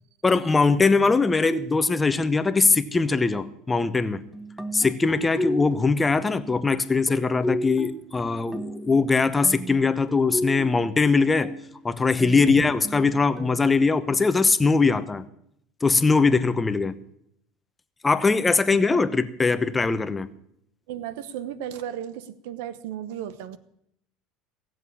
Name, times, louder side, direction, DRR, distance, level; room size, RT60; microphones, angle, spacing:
voice 1, 0.2-4.2 4.7-11.5 11.8-15.3 15.8-17.0 18.0-20.3, left 4 dB, 15° left, 12 dB, 0.9 m, -21 dB
sound 1, 3.7-4.0 4.3-6.1 7.1-9.2 9.4-11.0 11.4-11.8 12.2-14.1, equal, 5° right, 1.0 m, -34 dB
voice 2, 20.9-23.6, right 10 dB, 80° right, 14 dB, 1.0 m, -34 dB
17.0 x 7.7 x 8.5 m, 0.73 s
supercardioid pair, 100°, 0 cm